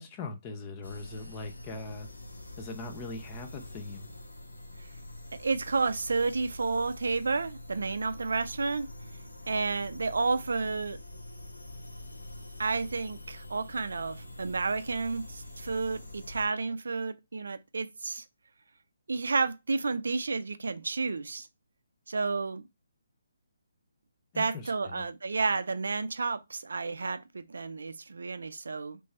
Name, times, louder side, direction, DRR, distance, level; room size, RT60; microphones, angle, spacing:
voice 1, 0.0-2.1 2.6-4.1 24.3-25.1, left 3 dB, 25° left, 0.8 m, -41 dB
sound 1, 0.8-16.5, left 1 dB, 90° left, 1.4 m, -45 dB
voice 2, 5.4-8.9 9.5-11.0 12.6-18.2 19.1-21.5 22.1-22.7 24.4-29.0, right 4 dB, 70° right, 0.4 m, -31 dB
3.4 x 3.3 x 4.2 m
figure-of-eight pair, 145°, 0 cm